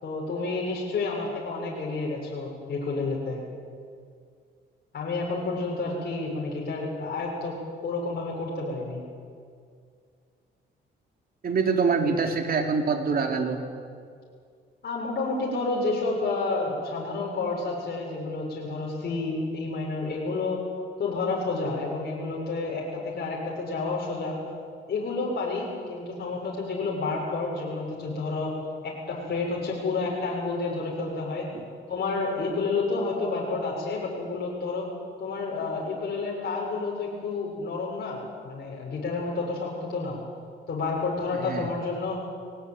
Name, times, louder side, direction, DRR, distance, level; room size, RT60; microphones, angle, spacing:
voice 1, 0.0-3.4 4.9-7.6 7.8-9.0 14.8-20.7 21.0-24.4 24.9-28.5 28.8-31.5 31.9-34.9 35.2-40.2 40.7-42.2, left 3 dB, 55° left, -4 dB, 6.7 m, -30 dB
voice 2, 11.4-13.6 31.5-31.7 41.3-41.7, right 5 dB, 50° right, 4 dB, 3.5 m, -25 dB
22.0 x 18.5 x 9.2 m, 2.2 s
cardioid pair, 90°, 20 cm